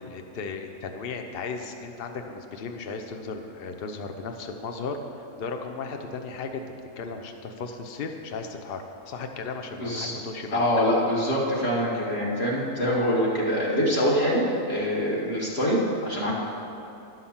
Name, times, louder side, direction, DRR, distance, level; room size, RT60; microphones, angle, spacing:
voice 1, 0.0-6.6 7.0-10.7, left 4 dB, 75° left, 5 dB, 0.5 m, -35 dB
voice 2, 9.8-10.1 10.5-16.3, equal, 35° left, -5 dB, 2.3 m, -24 dB
11.0 x 5.8 x 7.1 m, 2.8 s
omnidirectional pair, 1.8 m